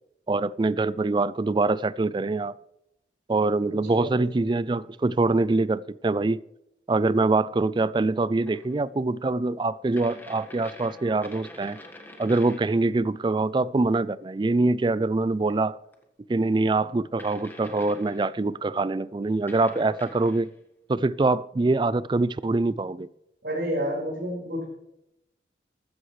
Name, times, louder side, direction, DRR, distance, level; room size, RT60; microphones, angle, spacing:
voice 1, 0.3-2.5 3.3-6.4 6.9-11.8 12.2-15.8 16.3-20.5 20.9-23.1, right 3 dB, 25° right, 0.3 m, -24 dB
sound 1, 8.4-8.8 10.0-12.9 15.9-16.0 17.2-18.4 19.5-20.6, left 1 dB, 10° left, 1.5 m, -45 dB
voice 2, 23.4-24.7, equal, 75° right, 5.0 m, -29 dB
14.5 x 13.5 x 3.3 m
head